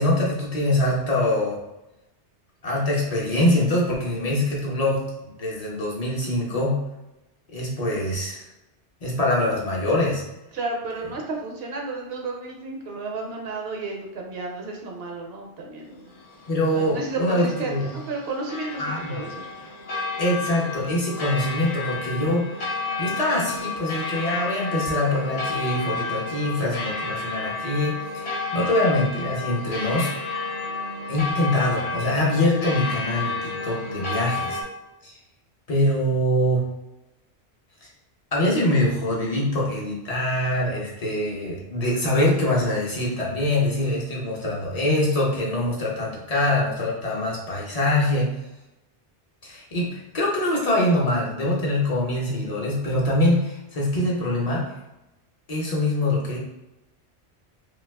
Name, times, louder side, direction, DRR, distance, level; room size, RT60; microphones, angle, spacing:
voice 1, 0.0-1.6 2.6-5.1 5.4-6.8 7.5-8.5 9.0-10.2 16.5-18.0 18.8-19.2 20.2-30.1 31.1-34.6 35.0-35.1 35.7-36.7 38.3-48.3 49.4-54.6 55.5-56.4, left 1 dB, 40° left, -4 dB, 0.7 m, -24 dB
voice 2, 10.5-16.1 16.7-19.5, right 3 dB, 65° right, 0 dB, 0.8 m, -32 dB
sound 1, 16.1-34.6, left 3 dB, 70° left, 0.9 m, -31 dB
2.7 x 2.3 x 3.3 m, 0.95 s
omnidirectional pair, 1.1 m